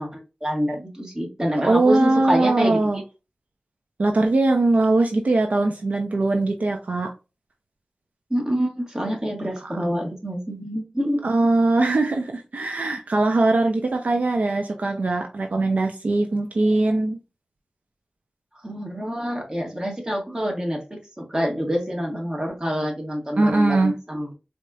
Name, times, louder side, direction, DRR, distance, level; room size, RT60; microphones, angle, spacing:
voice 1, 0.0-2.8 8.3-11.2 18.6-24.3, equal, 25° right, 1 dB, 1.5 m, -26 dB
voice 2, 1.6-3.0 4.0-7.1 9.6-9.8 11.2-17.2 23.4-23.9, right 2 dB, 70° right, 4 dB, 0.5 m, -21 dB
4.2 x 2.9 x 2.3 m, 0.28 s
cardioid pair, 45°, 3 cm